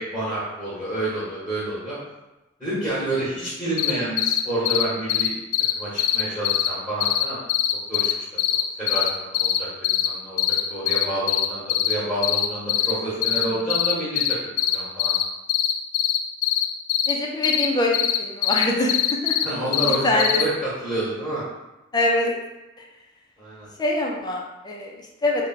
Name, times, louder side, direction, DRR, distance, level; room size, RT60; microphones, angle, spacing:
voice 1, 0.0-2.0 2.6-5.3 5.7-7.5 7.9-8.1 8.5-15.1 19.4-21.4 23.4-23.7, right 1 dB, 5° left, -10 dB, 1.1 m, -29 dB
sound 1, 3.8-3.9 4.2-4.4 4.6-4.8 5.1-5.3 5.5-5.7 6.0-6.7 7.0-7.2 7.5-8.1 8.4-9.6 9.8-10.1 10.4-10.6 10.9-11.9 12.2-12.9 13.2-13.4 13.7-15.2 15.5-17.1 17.4-17.7 17.9-18.2 18.4-19.4 19.7-20.4, left 12 dB, 85° left, 0.3 m, -21 dB
voice 2, 17.1-19.5 20.0-20.4 21.9-22.3 22.8-22.9 23.8-25.5, left 1 dB, 20° left, -1 dB, 0.4 m, -24 dB
3.2 x 2.2 x 4.0 m, 1.0 s
head